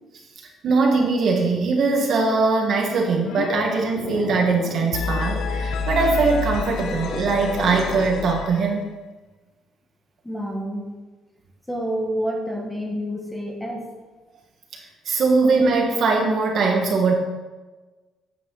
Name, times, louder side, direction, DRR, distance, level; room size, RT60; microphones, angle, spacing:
voice 1, 0.6-8.9 15.1-17.1, right 4 dB, 50° right, 1 dB, 1.8 m, -21 dB
sound 1, 3.2-3.6 3.9-8.9, left 5 dB, 70° left, 0.7 m, -29 dB
voice 2, 10.2-10.9 11.7-13.9, equal, 5° left, 0 dB, 1.4 m, -28 dB
9.1 x 8.9 x 4.1 m, 1.2 s
cardioid pair, 155°, 0 cm